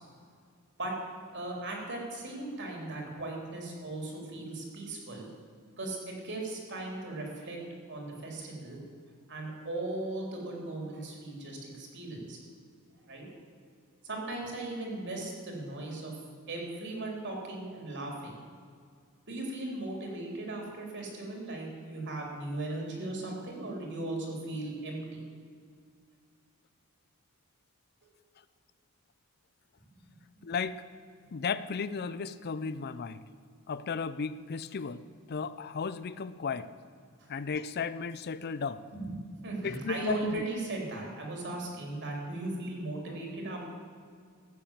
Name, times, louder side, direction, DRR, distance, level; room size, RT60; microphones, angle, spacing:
voice 1, 1.3-5.3 5.8-7.6 7.9-8.8 9.3-12.4 13.0-13.3 14.0-16.1 16.5-18.3 19.3-25.0 30.1-30.2 37.2-37.3 38.9-43.6, right 2 dB, 55° right, 0 dB, 3.4 m, -37 dB
voice 2, 30.4-30.8 31.3-33.2 33.7-35.0 35.3-36.7 37.3-38.8 39.6-40.4, left 5 dB, 45° left, 15 dB, 0.4 m, -34 dB
14.5 x 8.8 x 7.3 m, 2.1 s
head